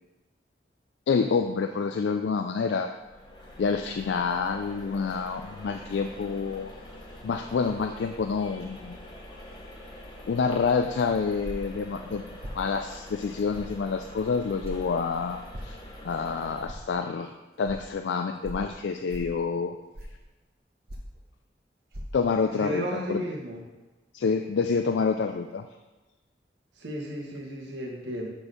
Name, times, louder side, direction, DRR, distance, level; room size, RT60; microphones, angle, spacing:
voice 1, 1.1-2.9 3.6-6.7 7.2-9.0 10.2-15.8 16.0-17.3 17.6-19.7 22.1-23.2 24.1-25.6, left 5 dB, 85° left, 6 dB, 0.4 m, -28 dB
sound 1, 2.9-16.7, left 1 dB, 25° left, 1.1 m, -45 dB
sound 2, 11.4-11.8 12.4-12.6 13.5-13.7 14.6-14.8 15.5-15.7 16.7-16.8 17.6-17.8 18.4-18.7 19.1-19.4 19.9-20.2 20.9-21.2 21.9-22.0, equal, 60° right, 0.9 m, -38 dB
voice 2, 22.6-23.6 26.7-28.3, equal, 85° right, -1 dB, 1.5 m, -34 dB
7.1 x 4.4 x 5.0 m, 1.2 s
head